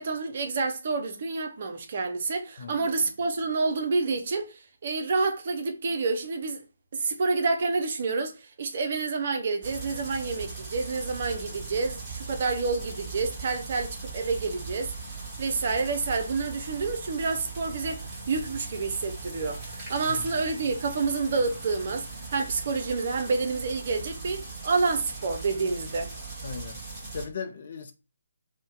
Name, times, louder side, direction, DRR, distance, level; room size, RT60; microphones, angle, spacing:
voice 1, 0.0-6.6 6.9-14.9 15.4-26.1, right 4 dB, 45° right, 0.6 m, -28 dB
voice 2, 2.6-3.1 20.0-20.3 26.4-26.8 27.1-27.9, left 5 dB, 50° left, 0.5 m, -38 dB
sound 1, 9.6-27.3, right 4 dB, 15° right, 1.3 m, -39 dB
2.6 x 2.1 x 3.6 m
figure-of-eight pair, 145°, 0 cm